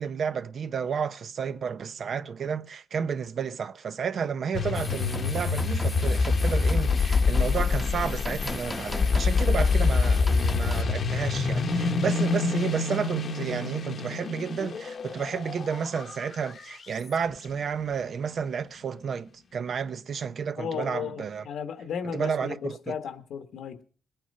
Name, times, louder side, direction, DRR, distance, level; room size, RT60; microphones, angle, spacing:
voice 1, 0.0-21.4 22.1-22.9, right 6 dB, 55° right, 0.7 m, -31 dB
sound 1, 4.5-17.0, left 4 dB, 50° left, 1.1 m, -26 dB
sound 2, 4.7-10.8, left 1 dB, 10° left, 1.0 m, -38 dB
voice 2, 20.6-23.8, left 7 dB, 80° left, 1.5 m, -35 dB
20.0 x 9.1 x 5.5 m
cardioid pair, 125°, 0 cm